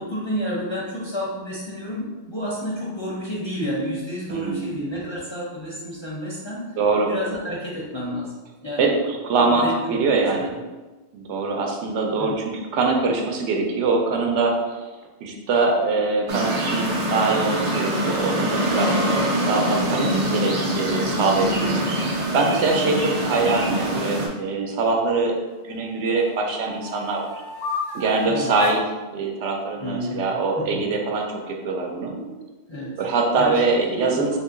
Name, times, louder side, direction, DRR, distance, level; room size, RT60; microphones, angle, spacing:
voice 1, 0.0-6.8 7.1-8.3 8.6-8.9 9.4-10.5 12.2-12.4 28.2-28.5 29.8-30.2 30.6-30.9 32.1-32.3 32.7-33.0 33.4-33.8 34.1-34.4, equal, 40° left, -6 dB, 0.4 m, -30 dB
voice 2, 4.3-4.8 6.8-7.1 8.8-10.5 11.1-14.6 15.2-25.3 25.6-27.4 27.9-28.9 29.1-32.1 33.0-34.4, right 3 dB, 80° right, 1 dB, 0.9 m, -23 dB
sound 1, 16.3-24.3, equal, 55° right, 0.4 m, -24 dB
sound 2, 17.1-21.0 23.9-25.2 25.7-28.9, left 4 dB, 85° left, 1.0 m, -37 dB
2.9 x 2.5 x 3.6 m, 1.2 s
omnidirectional pair, 1.2 m